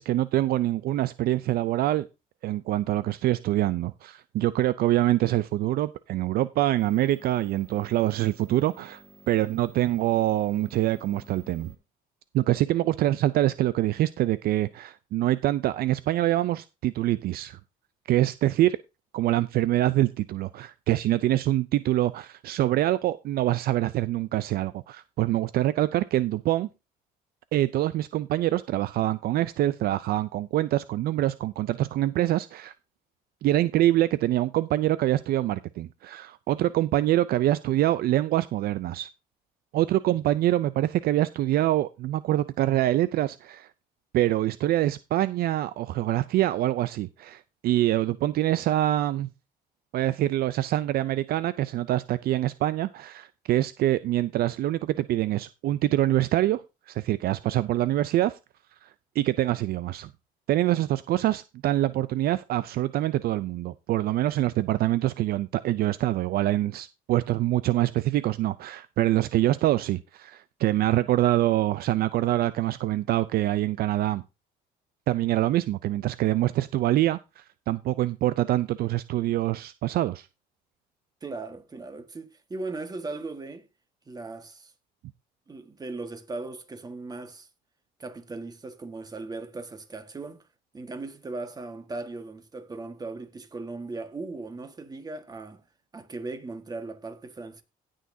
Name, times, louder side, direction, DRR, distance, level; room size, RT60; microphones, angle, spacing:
voice 1, 0.0-2.1 2.4-11.7 12.3-17.6 18.1-18.8 19.1-26.7 27.5-32.7 33.4-39.1 39.7-43.7 44.1-49.3 49.9-58.4 58.8-58.9 59.2-60.1 60.5-74.2 75.1-80.3, right 14 dB, 65° right, 0.4 m, -25 dB
sound 1, 6.8-11.8, left 1 dB, 10° left, 2.4 m, -53 dB
voice 2, 81.2-83.6 84.1-84.7 85.5-87.5 88.0-90.5 90.7-95.6 95.9-97.6, right 3 dB, 20° right, 1.5 m, -38 dB
17.5 x 6.3 x 2.7 m
cardioid pair, 110°, 17 cm